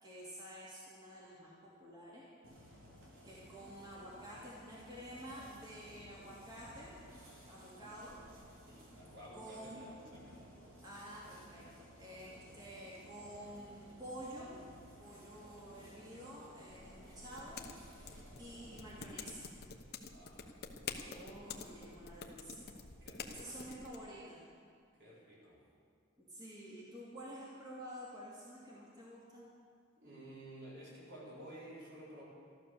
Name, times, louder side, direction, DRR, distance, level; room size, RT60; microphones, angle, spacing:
voice 1, 0.0-2.3 3.2-6.9 7.4-8.2 9.3-9.8 10.8-14.5 15.0-19.5 21.1-22.7 23.3-24.5 26.2-29.5, equal, 20° right, -7 dB, 2.5 m, -50 dB
sound 1, 2.4-19.2, equal, 80° right, 3.7 m, -57 dB
voice 2, 8.7-10.7 20.1-20.5 23.0-23.6 25.0-25.6 30.0-32.2, right 1 dB, 60° right, -6 dB, 4.9 m, -53 dB
sound 2, 16.7-24.0, left 5 dB, 50° left, 1.0 m, -49 dB
13.5 x 12.0 x 6.9 m, 2.2 s
head